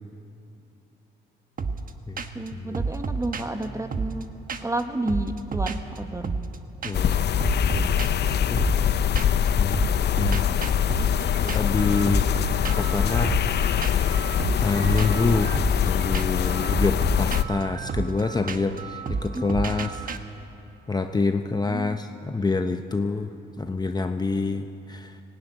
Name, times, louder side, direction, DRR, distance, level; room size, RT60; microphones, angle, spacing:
sound 1, 1.6-1.9 2.2-2.5 2.7-4.8 5.1-6.6 6.8-7.1 7.4-9.5 9.7-20.2, right 4 dB, 45° right, 1.3 m, -31 dB
voice 1, 2.3-4.3 4.6-6.4 19.3-19.5 21.7-22.0 24.5-24.6, right 1 dB, 15° right, 7 dB, 1.5 m, -31 dB
voice 2, 6.8-7.3 7.7-8.0 8.5-8.6 9.5-9.8 10.2-10.5 11.0-12.3 12.8-13.4 14.6-15.5 15.8-20.0 20.9-25.2, left 3 dB, 20° left, 6 dB, 0.9 m, -27 dB
sound 2, 6.9-17.4, left 9 dB, 55° left, 0.7 m, -23 dB
sound 3, 13.4-15.4 16.2-16.3 17.6-18.0, right 4 dB, 75° right, 6.6 m, -47 dB
18.0 x 17.5 x 9.9 m, 2.8 s
cardioid pair, 90°, 20 cm